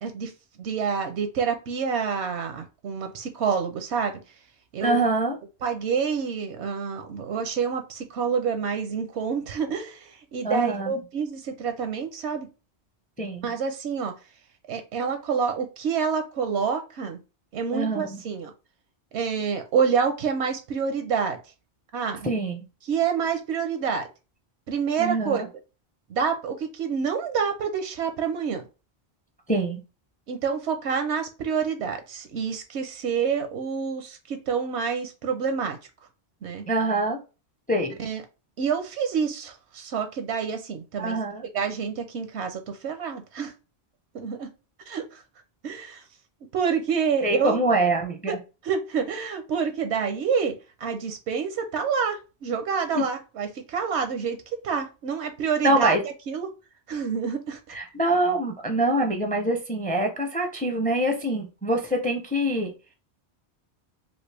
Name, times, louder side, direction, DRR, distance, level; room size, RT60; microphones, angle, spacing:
voice 1, 0.0-0.3 0.6-4.2 4.7-5.0 5.6-12.5 13.4-14.1 14.7-17.2 17.5-18.5 19.1-21.4 21.9-22.3 22.9-24.1 24.7-25.4 26.1-28.6 30.3-35.8 36.4-36.7 38.0-38.2 38.6-41.2 41.5-43.5 44.1-44.5 44.9-45.2 45.6-46.0 46.5-47.6 48.3-48.4 48.6-54.4 54.6-55.9 56.3-56.5 56.9-57.8, right 6 dB, 85° right, 7 dB, 0.9 m, -27 dB
voice 2, 4.8-5.4 10.4-10.9 13.2-13.5 17.7-18.2 22.2-22.7 25.0-25.5 29.5-29.8 36.7-37.2 37.7-38.0 41.0-41.4 47.2-48.4 52.9-53.1 55.6-56.0 57.7-62.7, right 1 dB, 10° left, 4 dB, 0.4 m, -24 dB
3.1 x 2.6 x 3.3 m, 0.31 s
omnidirectional pair, 1.1 m